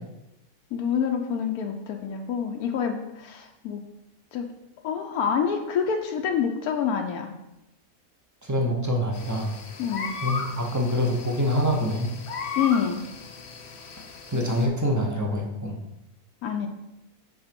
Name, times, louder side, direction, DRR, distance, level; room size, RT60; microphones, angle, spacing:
voice 1, 0.7-3.8 4.3-4.5 4.8-7.3 9.8-10.1 12.6-13.0 16.4-16.7, left 7 dB, 85° left, 3 dB, 1.1 m, -27 dB
voice 2, 8.4-9.5 10.2-12.1 14.3-15.8, equal, 15° right, 0 dB, 0.7 m, -25 dB
sound 1, 9.1-14.7, left 5 dB, 60° left, 1.1 m, -36 dB
5.8 x 4.4 x 5.1 m, 0.91 s
omnidirectional pair, 1.6 m